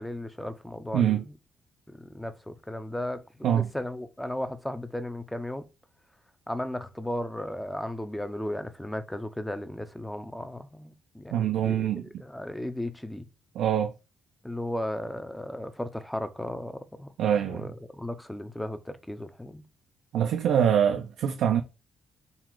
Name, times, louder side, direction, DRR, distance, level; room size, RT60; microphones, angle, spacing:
voice 1, 0.0-1.3 1.9-5.7 6.5-11.9 12.2-13.2 14.4-17.1 17.4-19.6, left 1 dB, 5° left, 0.6 m, -35 dB
voice 2, 0.9-1.2 3.4-3.7 11.3-12.1 13.6-13.9 17.2-17.7 20.1-21.6, right 9 dB, 80° right, 0.4 m, -24 dB
4.0 x 2.4 x 4.5 m
cardioid pair, 90°, 0 cm